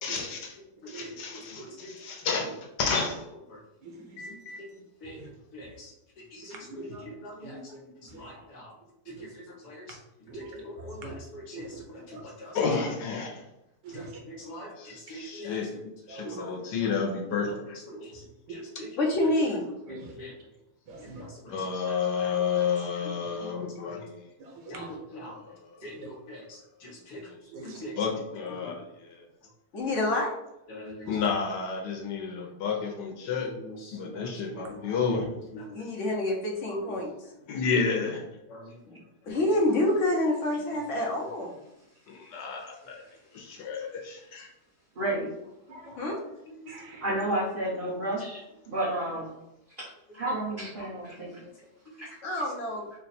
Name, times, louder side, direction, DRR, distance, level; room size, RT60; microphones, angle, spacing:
voice 1, 0.0-0.5 0.9-2.5 2.8-3.1 4.2-4.6 12.5-13.3 14.8-14.9 15.2-15.7 16.1-17.5 21.5-24.0 28.0-28.8 31.1-33.5 33.9-35.2 37.5-38.2 42.2-42.7 43.3-44.5, left 5 dB, 90° left, 1 dB, 1.3 m, -30 dB
voice 2, 1.0-1.9 5.0-5.1 5.5-5.9 6.3-7.6 8.2-8.6 9.6-9.8 10.6-11.9 12.2-12.6 13.9-14.7 15.1-15.8 16.2-16.9 17.4-17.5 17.9-18.1 18.5-18.9 20.1-20.3 23.4-23.9 24.7-25.3 25.8-26.4 26.8-27.2 27.8-27.9 30.7-31.1 33.4-34.3 34.7-34.8 35.1-35.2 35.5-35.6 38.5-38.6, left 1 dB, 70° left, -1 dB, 1.4 m, -43 dB
voice 3, 3.8-4.2 5.0-5.1 6.7-7.0 8.3-8.4 9.1-9.2 10.3-10.6 11.0-11.1 11.5-11.7 12.1-12.2 13.8-14.1 16.1-16.5 18.5-18.6 19.9-20.0 20.9-21.2 21.5-21.6 24.7-24.9 25.8-25.9 27.5-27.8 33.4-33.5 45.7-45.9 46.7-47.0, right 3 dB, 85° right, 2 dB, 1.4 m, -43 dB
voice 4, 19.0-19.6 25.9-26.0 29.7-30.3 35.7-37.1 38.8-39.0 39.2-41.5 46.0-46.2 52.2-52.9, left 1 dB, 55° left, -1 dB, 1.1 m, -27 dB
voice 5, 44.9-45.3 47.0-48.4 48.7-49.3 49.8-49.9 50.1-51.3 52.0-52.1, right 1 dB, 35° right, -9 dB, 1.2 m, -30 dB
4.0 x 2.3 x 4.1 m, 0.88 s
omnidirectional pair, 1.8 m